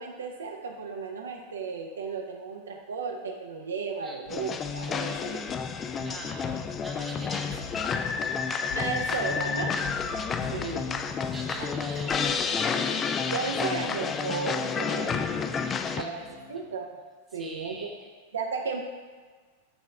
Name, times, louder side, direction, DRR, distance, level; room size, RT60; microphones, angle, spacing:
voice 1, 0.0-5.4 8.8-9.8 10.5-11.0 11.6-11.7 13.3-15.2 15.9-16.9 17.3-17.9 18.3-18.8, right 5 dB, 70° right, 2 dB, 0.5 m, -34 dB
sound 1, 4.2-13.0, left 5 dB, 70° left, 1.7 m, -46 dB
sound 2, 4.3-16.0, left 6 dB, 25° left, 0.3 m, -30 dB
voice 2, 6.0-7.8 10.5-10.8 11.3-12.4 15.5-16.2 16.5-16.7 17.4-18.1, right 2 dB, 10° right, 0 dB, 0.9 m, -43 dB
sound 3, 9.5-16.6, left 7 dB, 40° left, 0.7 m, -47 dB
6.9 x 3.1 x 5.2 m, 1.5 s
figure-of-eight pair, 90°, 0 cm